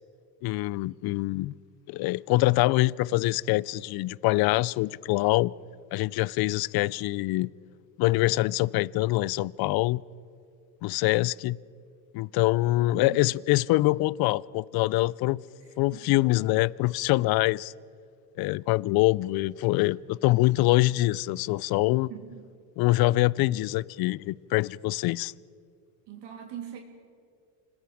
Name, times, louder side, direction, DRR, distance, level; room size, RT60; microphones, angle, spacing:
voice 1, 0.4-1.5 1.9-5.5 5.9-7.5 8.0-10.0 10.8-11.6 12.1-15.4 15.8-17.7 18.4-22.1 22.8-25.3, left 19 dB, 50° left, 0.5 m, -24 dB
voice 2, 12.8-13.2 15.6-16.3 22.1-22.4 26.1-26.8, right 10 dB, 55° right, 3.1 m, -43 dB
26.5 x 20.5 x 4.8 m
supercardioid pair, 110°, 49 cm